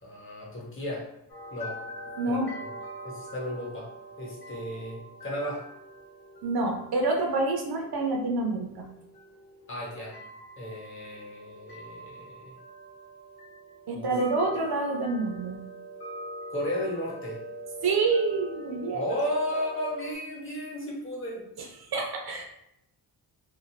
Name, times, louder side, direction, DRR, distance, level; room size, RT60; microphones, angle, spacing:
voice 1, 0.0-1.1 1.5-1.8 2.3-2.7 3.0-3.9 4.2-5.6 9.7-10.2 10.6-12.5 13.9-14.2 16.5-17.4 18.9-21.5, equal, 30° left, -4 dB, 1.0 m, -34 dB
sound 1, 1.3-20.2, right 1 dB, 60° left, 0.8 m, -43 dB
voice 2, 2.2-2.5 6.4-8.9 13.9-15.6 17.8-19.0 21.9-22.4, right 3 dB, 65° right, 2 dB, 0.6 m, -27 dB
2.5 x 2.4 x 3.0 m, 0.79 s
wide cardioid pair, 125°, 41 cm